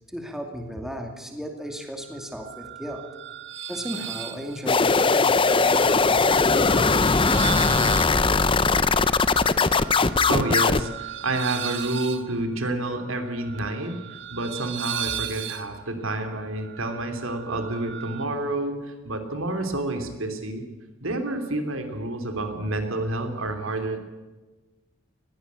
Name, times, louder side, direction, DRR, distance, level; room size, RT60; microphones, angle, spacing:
voice 1, 0.1-3.1 3.7-7.8, equal, ahead, 3 dB, 2.4 m, -35 dB
sound 1, 2.1-18.2, right 10 dB, 60° right, 1.7 m, -37 dB
sound 2, 4.7-10.8, left 4 dB, 25° left, 0.7 m, -20 dB
voice 2, 10.3-13.9 14.3-20.6 21.0-24.0, right 2 dB, 75° right, 6 dB, 3.1 m, -29 dB
20.5 x 15.5 x 8.3 m, 1.2 s
head